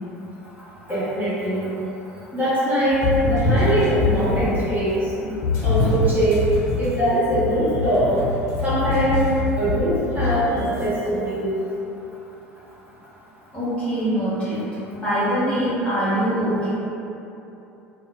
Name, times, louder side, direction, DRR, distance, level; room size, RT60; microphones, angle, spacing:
voice 1, 0.9-1.7 2.3-5.1 5.6-6.4 6.8-8.2 8.6-9.3 9.6-11.6, equal, 25° right, -12 dB, 1.2 m, -22 dB
sound 1, 2.9-4.7 5.4-10.8, left 3 dB, 45° left, 0.6 m, -24 dB
voice 2, 13.5-14.6 14.9-16.7, right 1 dB, 15° left, -12 dB, 1.1 m, -23 dB
3.7 x 2.1 x 2.4 m, 2.9 s
figure-of-eight pair, 70°, 8 cm